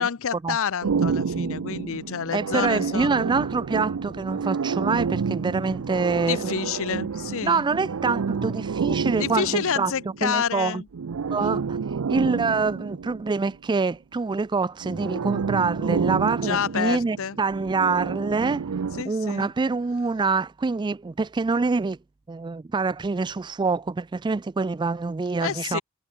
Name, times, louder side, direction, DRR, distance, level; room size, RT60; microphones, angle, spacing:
voice 1, 0.0-3.3 6.3-7.6 9.2-10.9 11.4-11.6 16.4-17.4 19.0-19.5 25.4-25.8, left 7 dB, 65° left, 0.6 m, -28 dB
sound 1, 0.8-10.4 10.9-13.5 14.8-19.0, right 5 dB, 75° right, 0.5 m, -29 dB
voice 2, 2.3-6.5 7.4-9.9 10.2-10.8 11.3-22.0 22.3-25.8, right 4 dB, 20° right, 0.3 m, -26 dB
head